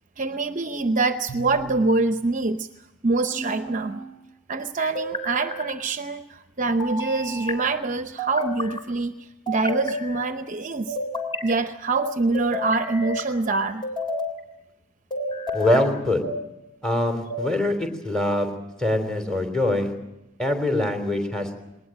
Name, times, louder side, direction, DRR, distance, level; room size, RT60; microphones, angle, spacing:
voice 1, 0.2-2.7 3.0-4.0 4.5-11.0 11.4-13.8, right 3 dB, 40° right, 9 dB, 0.8 m, -25 dB
sound 1, 1.3-2.0 3.3-4.1 4.9-5.7 6.8-7.6 8.2-8.8 9.5-10.3 11.0-11.6 12.3-13.3 13.8-14.4 15.1-15.9, left 2 dB, 25° left, 3.5 m, -32 dB
sound 2, 9.8-10.0 10.9-11.0 11.9-12.1 13.0-13.2 14.1-14.2 15.2-15.3 16.2-16.4 17.3-17.5, right 2 dB, 45° left, 6.9 m, -30 dB
voice 2, 15.5-16.2 16.8-18.5 18.8-19.9 20.4-21.5, left 1 dB, 5° left, 5 dB, 3.4 m, -23 dB
20.5 x 19.5 x 8.9 m, 0.91 s
head